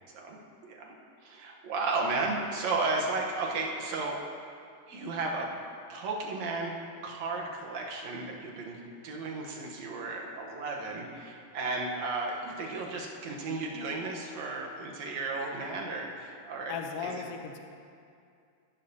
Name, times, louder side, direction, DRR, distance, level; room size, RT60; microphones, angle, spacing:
voice 1, 0.6-1.0 1.2-4.2 4.9-5.6 5.9-16.8 17.0-17.2, right 3 dB, 70° right, 0 dB, 2.3 m, -34 dB
voice 2, 16.7-17.6, left 6 dB, 70° left, 4 dB, 1.5 m, -36 dB
14.5 x 11.5 x 2.8 m, 2.4 s
omnidirectional pair, 3.3 m